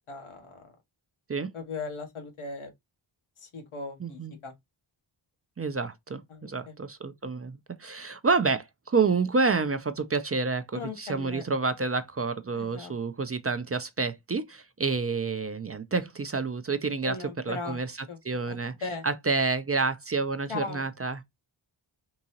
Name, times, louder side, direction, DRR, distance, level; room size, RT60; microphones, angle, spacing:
voice 1, 0.1-0.7 1.5-2.7 3.4-4.5 6.3-6.7 10.7-11.4 12.5-13.0 17.0-17.8 18.1-18.2 18.8-19.1 20.5-20.9, left 3 dB, 90° left, 1.1 m, -38 dB
voice 2, 4.0-4.3 5.6-17.2 17.5-17.9 18.2-18.7 19.0-21.2, right 4 dB, 30° right, 0.4 m, -29 dB
3.8 x 2.8 x 2.8 m
wide cardioid pair, 80°, 49 cm